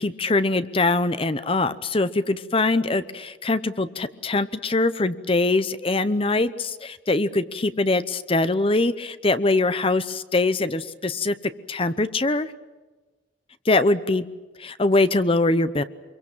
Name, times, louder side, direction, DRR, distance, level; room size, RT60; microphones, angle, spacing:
voice 1, 0.0-11.3 11.7-12.5 13.7-14.2 14.6-15.8, left 2 dB, 30° left, 13 dB, 0.8 m, -23 dB
25.0 x 23.0 x 7.4 m, 1.2 s
head